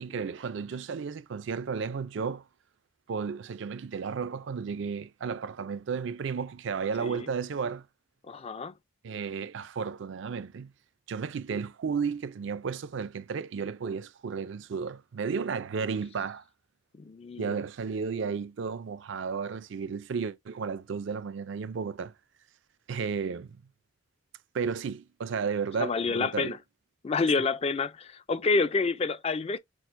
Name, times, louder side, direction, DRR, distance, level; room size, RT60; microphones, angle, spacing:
voice 1, 0.0-2.4 3.1-7.8 9.0-10.7 11.1-16.4 17.4-22.1 22.9-23.6 24.5-26.5, right 5 dB, 65° right, 0.4 m, -33 dB
voice 2, 8.3-8.7 17.0-17.6 25.8-26.6 27.0-29.6, left 4 dB, 30° left, 0.3 m, -28 dB
6.1 x 2.1 x 2.5 m
head